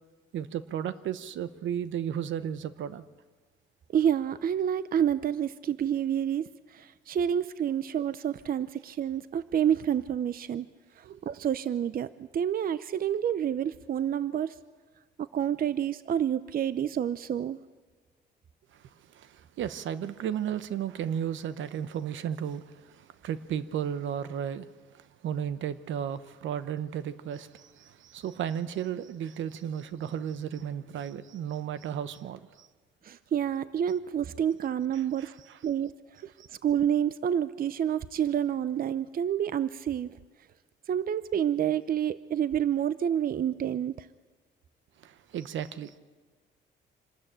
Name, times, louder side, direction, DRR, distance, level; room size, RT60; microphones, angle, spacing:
voice 1, 0.3-3.0 11.0-11.2 18.7-32.7 34.9-35.6 36.2-36.5 45.0-46.0, right 9 dB, 75° right, 1.0 m, -34 dB
voice 2, 3.9-10.7 11.0-14.6 15.2-17.6 33.0-35.3 35.6-35.9 36.6-40.1 40.9-44.1, right 9 dB, 45° right, 0.6 m, -28 dB
26.0 x 13.0 x 8.9 m
cardioid pair, 90°, 20 cm